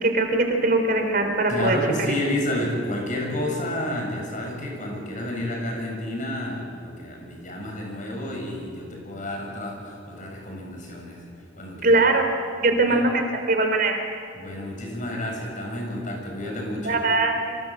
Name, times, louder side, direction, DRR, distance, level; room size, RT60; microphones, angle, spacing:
voice 1, 0.0-1.8 11.8-12.3 12.6-14.0 16.8-17.6, right 2 dB, 50° right, 4 dB, 3.6 m, -21 dB
voice 2, 1.5-11.2 11.5-12.0 12.9-13.0 14.3-17.0, left 1 dB, 45° left, 0 dB, 7.9 m, -30 dB
27.5 x 24.0 x 8.0 m, 2.3 s
head